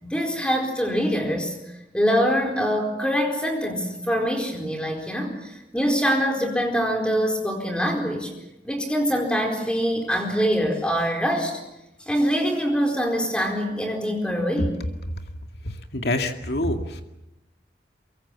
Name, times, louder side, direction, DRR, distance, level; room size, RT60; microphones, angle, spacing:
voice 1, 0.0-1.5 1.9-8.3 8.6-11.6 12.0-14.7, equal, 5° left, 2 dB, 4.3 m, -24 dB
voice 2, 15.6-17.0, left 1 dB, 70° left, 5 dB, 2.2 m, -26 dB
23.5 x 23.5 x 7.4 m, 0.94 s
head